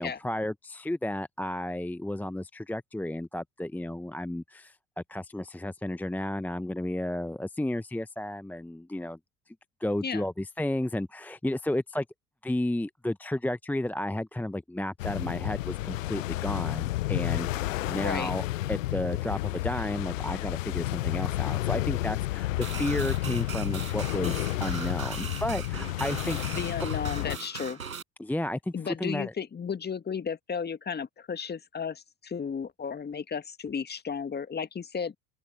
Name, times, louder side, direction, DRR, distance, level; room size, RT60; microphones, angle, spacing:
voice 1, 0.0-9.2 9.5-9.6 9.8-12.0 12.4-22.5 22.8-26.5 28.2-28.7 29.0-29.3, left 1 dB, 5° left, 1.0 m, -32 dB
sound 1, 15.0-27.4, left 16 dB, 65° left, 1.1 m, -31 dB
voice 2, 17.9-18.3 26.5-27.8 28.7-35.1, left 6 dB, 25° left, 2.1 m, -34 dB
sound 2, 22.6-28.0, right 6 dB, 80° right, 6.4 m, -39 dB
open air
figure-of-eight pair, 65°, 41 cm